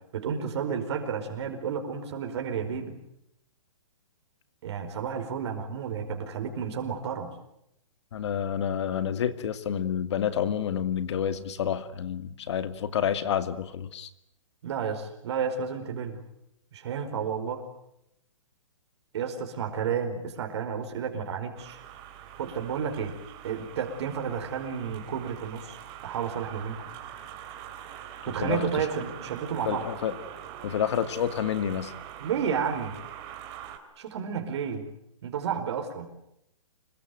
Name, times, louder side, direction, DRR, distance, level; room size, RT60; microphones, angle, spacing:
voice 1, 0.0-3.0 4.6-7.3 14.6-16.2 16.7-17.6 19.1-21.8 22.4-23.2 23.4-26.8 28.2-29.9 32.2-33.0 34.0-34.9 35.2-36.1, right 7 dB, 55° right, 4 dB, 5.0 m, -31 dB
voice 2, 8.1-14.1 28.4-28.7 29.7-30.1 30.6-31.9, left 9 dB, 55° left, 11 dB, 2.3 m, -29 dB
sound 1, 21.6-33.8, right 10 dB, 30° right, 3.6 m, -43 dB
26.0 x 23.0 x 9.3 m, 0.79 s
hypercardioid pair, 150°, 17 cm